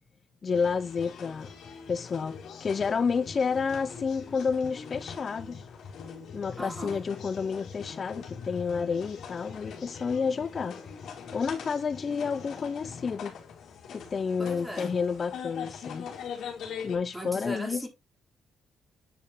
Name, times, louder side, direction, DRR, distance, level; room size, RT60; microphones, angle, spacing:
voice 1, 0.4-1.5 1.9-5.7 6.3-10.8 11.3-13.3 13.9-16.1 16.8-17.9, left 5 dB, 40° left, 0.3 m, -30 dB
sound 1, 0.5-17.0, left 6 dB, 70° left, 2.9 m, -42 dB
voice 2, 6.6-7.0 14.4-15.0 17.1-17.9, equal, 5° right, 3.4 m, -38 dB
9.3 x 5.4 x 2.8 m
cardioid pair, 90°, 0 cm